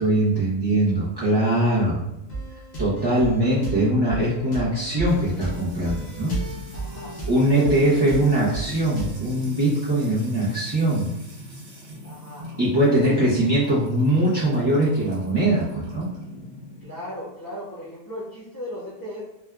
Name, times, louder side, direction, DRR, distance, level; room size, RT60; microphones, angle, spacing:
voice 1, 0.0-2.1 2.8-6.3 7.3-11.1 12.6-16.1, right 1 dB, 40° right, -10 dB, 0.3 m, -21 dB
sound 1, 2.3-9.3, right 3 dB, 45° left, 0.6 m, -34 dB
Music / Water tap faucet / Trickle dribble, 5.1-16.8, left 1 dB, 75° right, 1.5 m, -40 dB
voice 2, 6.7-7.1 7.5-8.0 12.0-12.4 13.0-13.2 16.8-19.2, left 1 dB, 15° left, -9 dB, 0.8 m, -36 dB
3.3 x 2.2 x 2.2 m, 0.86 s
omnidirectional pair, 1.6 m